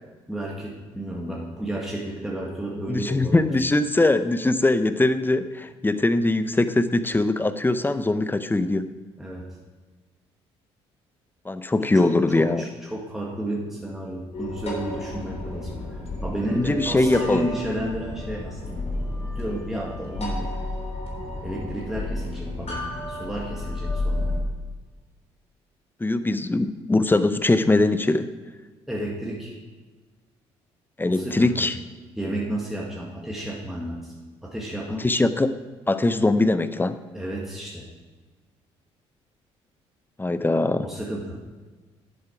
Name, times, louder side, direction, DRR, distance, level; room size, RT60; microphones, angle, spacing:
voice 1, 0.3-3.5 9.2-9.5 11.9-19.0 19.4-20.5 21.4-24.3 28.9-29.6 31.0-31.7 32.2-34.1 34.4-35.1 37.1-37.9 40.8-41.4, right 1 dB, ahead, -4 dB, 1.9 m, -32 dB
voice 2, 2.9-8.9 11.5-12.6 16.5-17.5 26.0-28.3 31.0-31.7 35.0-35.5 35.9-37.0 40.2-40.9, left 2 dB, 15° left, 12 dB, 0.7 m, -21 dB
sound 1, 14.3-24.4, left 2 dB, 50° left, 3.4 m, -32 dB
10.5 x 7.6 x 4.6 m, 1.3 s
hypercardioid pair, 55°, 14 cm